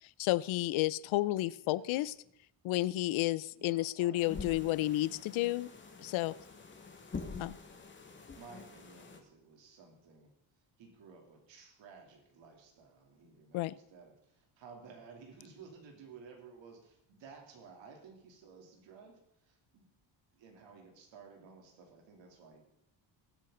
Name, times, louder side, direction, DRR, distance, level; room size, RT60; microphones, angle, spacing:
voice 1, 0.2-2.1 2.6-5.7 6.0-6.4 7.4-7.6 13.5-13.8, left 16 dB, 80° left, 19 dB, 0.7 m, -31 dB
voice 2, 1.4-2.3 3.5-4.5 5.9-6.5 7.2-7.6 8.1-19.9 20.3-22.6, right 5 dB, 65° right, 1 dB, 3.3 m, -56 dB
sound 1, 4.2-9.2, left 4 dB, 25° left, 1.9 m, -46 dB
20.5 x 8.6 x 3.9 m, 0.76 s
cardioid pair, 140°, 47 cm